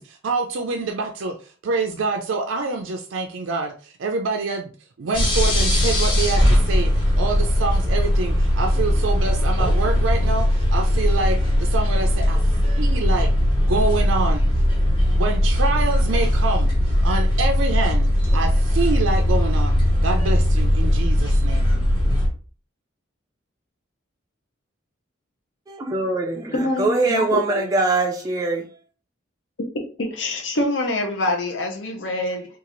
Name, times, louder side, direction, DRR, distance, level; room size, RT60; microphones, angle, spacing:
voice 1, 0.0-4.7 5.0-12.4 12.8-13.3 13.6-14.4 15.1-19.8 20.0-21.7, right 3 dB, 80° right, 0.4 m, -26 dB
sound 1, 5.1-22.3, left 1 dB, 25° left, 1.1 m, -19 dB
voice 2, 25.7-28.7, right 3 dB, 20° right, 0.3 m, -22 dB
voice 3, 26.5-27.6 30.0-32.5, left 1 dB, 65° left, 0.7 m, -25 dB
3.8 x 2.4 x 2.9 m
head